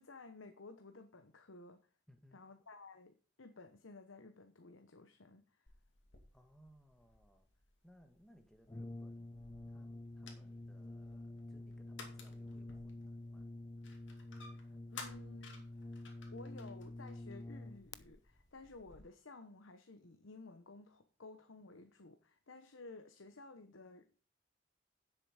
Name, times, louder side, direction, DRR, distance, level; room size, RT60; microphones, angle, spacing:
voice 1, 0.0-1.8 2.3-5.6 14.4-15.7 16.3-24.2, left 3 dB, 90° left, 1.0 m, -55 dB
voice 2, 2.1-2.4 6.3-7.5 7.8-9.4 9.7-13.5, equal, 5° left, 1.3 m, -66 dB
sound 1, 5.7-19.0, left 4 dB, 75° left, 2.4 m, -58 dB
Brass instrument, 8.7-18.0, left 2 dB, 20° left, 0.4 m, -48 dB
10.0 x 7.6 x 4.9 m
head